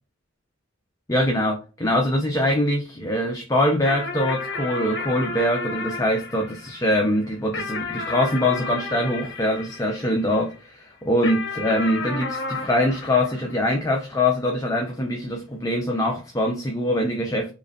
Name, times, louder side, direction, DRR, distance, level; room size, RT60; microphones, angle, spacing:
voice 1, 1.1-17.5, left 1 dB, 15° left, 0.4 m, -23 dB
sound 1, 3.9-10.6 11.2-14.0, left 3 dB, 55° left, 0.8 m, -33 dB
4.6 x 2.6 x 2.2 m
head